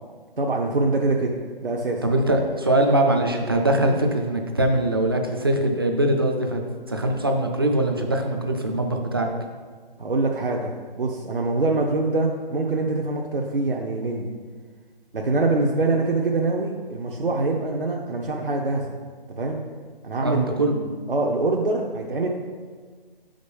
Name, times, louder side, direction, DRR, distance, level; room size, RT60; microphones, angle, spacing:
voice 1, 0.4-1.3 1.6-2.0 10.0-14.3 15.1-18.9 19.4-19.6 20.0-22.3, right 2 dB, 65° right, -1 dB, 0.8 m, -24 dB
voice 2, 2.0-6.6 6.9-9.3 20.2-20.8, right 1 dB, 25° right, 3 dB, 0.5 m, -22 dB
6.1 x 5.2 x 5.3 m, 1.5 s
figure-of-eight pair, 145°, 29 cm